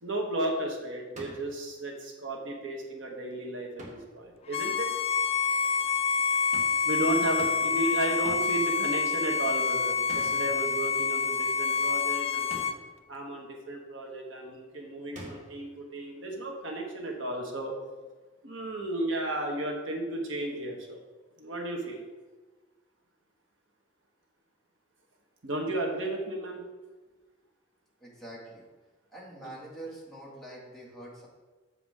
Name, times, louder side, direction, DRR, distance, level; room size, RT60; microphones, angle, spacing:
voice 1, 0.0-4.9 6.8-12.6 13.1-17.7 18.4-21.0 21.4-22.0 25.4-26.6 29.4-29.5, right 1 dB, 75° right, 1 dB, 1.4 m, -33 dB
sound 1, 1.2-1.6 3.8-4.2 6.5-6.9 7.4-7.8 8.3-8.6 10.1-10.6 12.5-12.9 15.1-15.7, right 1 dB, 40° right, 1.4 m, -45 dB
Bowed string instrument, 4.5-12.8, left 5 dB, 30° left, 0.3 m, -27 dB
voice 2, 28.0-28.7 29.1-31.3, right 1 dB, ahead, -7 dB, 2.2 m, -45 dB
7.2 x 6.8 x 3.6 m, 1.3 s
head